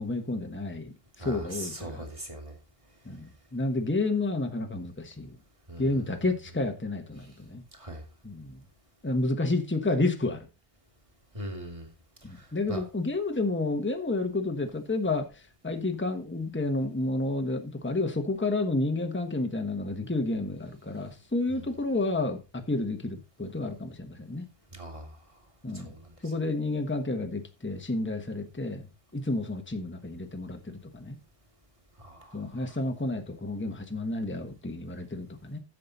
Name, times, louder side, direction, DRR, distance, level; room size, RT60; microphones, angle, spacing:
voice 1, 0.0-2.1 3.0-5.4 5.8-7.6 8.2-8.6 9.0-10.5 12.5-24.4 25.6-25.9 26.2-28.9 29.1-31.2 32.3-35.6, left 2 dB, 10° left, 1.2 m, -30 dB
voice 2, 1.2-2.6 5.7-6.0 7.2-7.3 7.7-8.0 11.3-11.9 12.2-12.8 21.5-21.7 24.7-25.2 25.7-26.1 32.0-32.7, right 1 dB, 30° right, 2.4 m, -41 dB
10.5 x 7.6 x 4.0 m
omnidirectional pair, 1.1 m